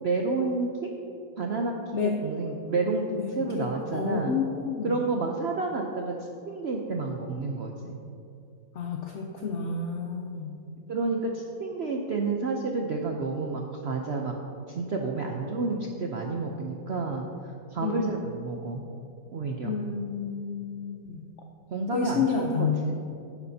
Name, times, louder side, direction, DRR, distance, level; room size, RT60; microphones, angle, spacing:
voice 1, 0.0-0.9 1.4-3.0 3.4-4.3 4.8-6.1 6.5-8.0 10.9-14.3 14.7-17.2 17.7-18.8 19.3-19.7 21.7-22.9, right 3 dB, 80° right, 1 dB, 0.5 m, -30 dB
voice 2, 1.9-2.2 3.2-5.0 8.7-10.6 17.8-18.2 19.6-21.2 21.9-22.9, left 6 dB, 65° left, 2 dB, 0.7 m, -30 dB
11.5 x 9.8 x 2.7 m, 2.6 s
omnidirectional pair, 2.0 m